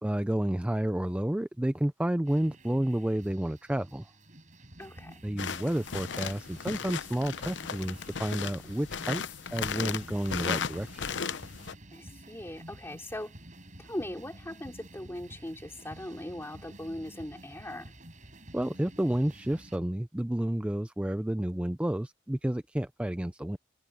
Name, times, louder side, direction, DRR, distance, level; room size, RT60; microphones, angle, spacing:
voice 1, 0.0-4.1 5.2-11.1 18.5-23.6, right 1 dB, 5° right, 0.4 m, -30 dB
sound 1, 2.3-19.8, right 1 dB, 45° right, 5.1 m, -51 dB
voice 2, 4.8-5.2 11.9-13.3 13.8-17.9, left 1 dB, 15° left, 3.5 m, -40 dB
sound 2, 5.4-11.7, left 6 dB, 85° left, 0.7 m, -36 dB
head